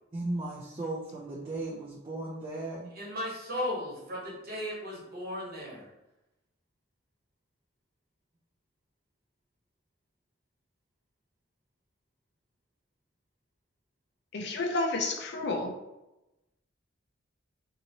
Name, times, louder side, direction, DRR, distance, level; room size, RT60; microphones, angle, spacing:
voice 1, 0.1-2.9, right 2 dB, 25° right, -5 dB, 0.4 m, -36 dB
voice 2, 3.0-5.9, left 1 dB, 50° right, -4 dB, 1.1 m, -36 dB
voice 3, 14.3-15.7, left 2 dB, 60° left, 2 dB, 0.5 m, -30 dB
2.7 x 2.7 x 2.8 m, 0.96 s
head